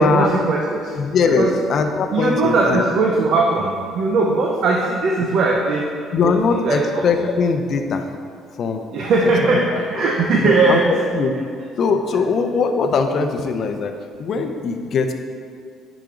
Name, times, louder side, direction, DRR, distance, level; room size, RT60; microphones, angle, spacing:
voice 1, 0.0-1.0 1.4-1.5 2.1-6.3 6.6-7.3 8.9-11.0, right 3 dB, 55° right, -1 dB, 0.7 m, -19 dB
voice 2, 0.9-2.9 6.1-8.1 8.6-8.9 9.4-9.8 10.4-11.3 11.8-15.1, left 4 dB, 50° left, 6 dB, 0.6 m, -21 dB
8.9 x 5.1 x 3.8 m, 2.2 s
cardioid pair, 125°, 0 cm